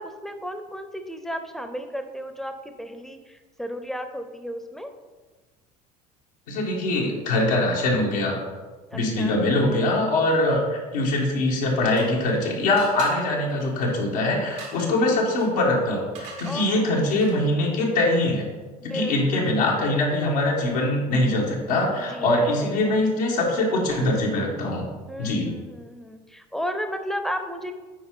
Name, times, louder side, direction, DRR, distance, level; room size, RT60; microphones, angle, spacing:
voice 1, 0.0-4.9 8.4-8.5 8.9-9.8 14.7-15.2 16.4-17.2 18.8-19.5 22.0-22.3 22.6-23.0 25.1-27.7, equal, ahead, 7 dB, 0.7 m, -34 dB
voice 2, 6.5-8.4 8.9-18.5 18.8-24.9 25.2-25.6, left 2 dB, 90° left, -3 dB, 1.5 m, -23 dB
sound 1, 11.5-12.4 12.8-17.6, right 4 dB, 80° right, 1.7 m, -44 dB
8.3 x 4.5 x 3.8 m, 1.3 s
supercardioid pair, 90°, 20 cm